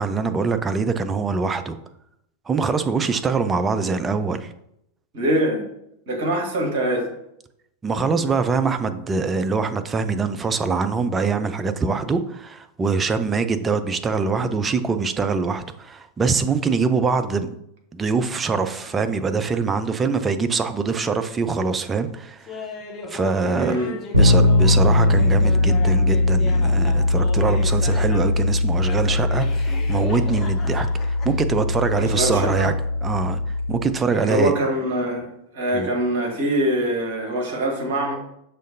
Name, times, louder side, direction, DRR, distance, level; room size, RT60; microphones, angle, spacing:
voice 1, 0.0-1.8 2.5-4.5 7.8-17.5 17.9-22.6 23.1-23.8 24.1-32.7 33.0-33.4 33.7-34.5 35.7-35.9, right 4 dB, 20° right, 9 dB, 0.3 m, -23 dB
voice 2, 5.1-5.7 6.1-7.1 23.4-23.9 32.0-32.7 34.1-38.2, right 1 dB, 50° right, 1 dB, 1.0 m, -24 dB
Laughter, 22.5-28.4 28.8-31.4, left 3 dB, 25° left, 0.7 m, -37 dB
Bass guitar, 24.1-34.0, left 2 dB, 90° right, 0.5 m, -20 dB
6.2 x 2.4 x 2.6 m, 0.77 s
figure-of-eight pair, 90°, 0 cm